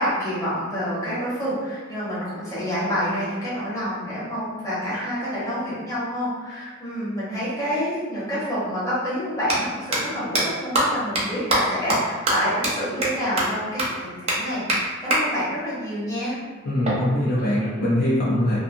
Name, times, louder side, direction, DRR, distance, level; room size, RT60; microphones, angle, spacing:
voice 1, 0.0-16.4, equal, 15° left, -10 dB, 0.9 m, -28 dB
sound 1, 8.2-8.3 9.3-9.5 9.9-10.0 10.3-10.4 10.7-10.8 11.2-11.3 11.5-11.6 11.9-12.0 12.3-12.4 12.6-12.7 13.0-13.1 13.4-13.5 13.8-13.9 14.3-14.4 14.7-14.8 15.1-15.2 16.8-17.9, right 1 dB, 30° right, 0.5 m, -23 dB
voice 2, 16.7-18.6, left 1 dB, 45° left, -8 dB, 0.5 m, -22 dB
2.6 x 2.3 x 2.5 m, 1.4 s
head